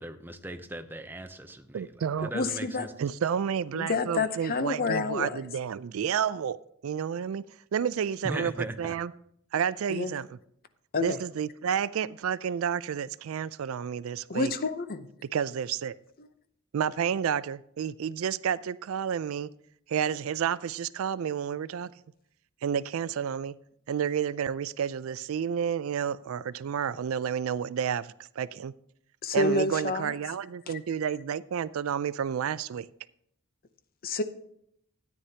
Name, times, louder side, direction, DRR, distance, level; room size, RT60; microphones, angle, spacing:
voice 1, 0.0-1.9 2.2-2.9 8.2-8.9, right 1 dB, 10° right, 0.6 m, -38 dB
voice 2, 1.7-2.3 3.0-6.6 6.8-7.4 7.7-9.1 9.5-10.3 11.0-14.5 15.3-16.0 16.7-19.5 19.9-21.9 22.6-23.6 23.9-28.7 29.3-32.9, right 8 dB, 70° right, 0.3 m, -30 dB
voice 3, 2.3-2.9 3.7-5.4 9.9-10.1 10.9-11.2 14.3-15.1 29.2-30.1 34.0-34.2, left 3 dB, 45° left, 0.7 m, -28 dB
13.0 x 9.5 x 2.8 m
head